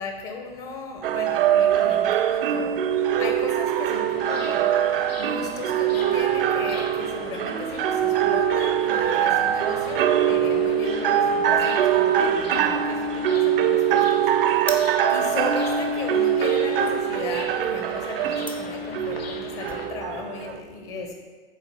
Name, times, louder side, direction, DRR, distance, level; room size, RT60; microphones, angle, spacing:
voice 1, 0.0-21.1, left 4 dB, 40° left, 3 dB, 0.8 m, -36 dB
sound 1, 1.0-20.6, right 9 dB, 65° right, 0.5 m, -23 dB
sound 2, 3.9-19.9, left 3 dB, 85° left, 0.9 m, -41 dB
sound 3, 14.6-19.8, left 1 dB, 5° left, 0.3 m, -40 dB
8.3 x 2.9 x 5.3 m, 1.5 s
hypercardioid pair, 110°, 30 cm